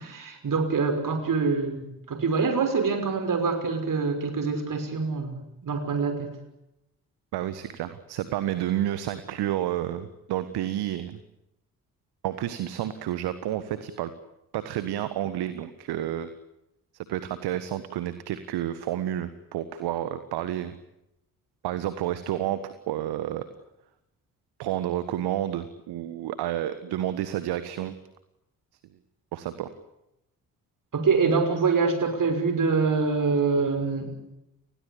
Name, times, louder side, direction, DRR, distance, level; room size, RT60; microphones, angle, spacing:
voice 1, 0.0-6.3 30.9-34.1, right 4 dB, 45° right, 8 dB, 6.1 m, -25 dB
voice 2, 7.3-11.2 12.2-14.1 14.5-16.3 17.1-20.7 21.6-23.4 24.6-27.9 29.3-29.7, right 12 dB, 60° right, 12 dB, 1.5 m, -30 dB
30.0 x 21.0 x 8.7 m, 0.87 s
figure-of-eight pair, 40°, 43 cm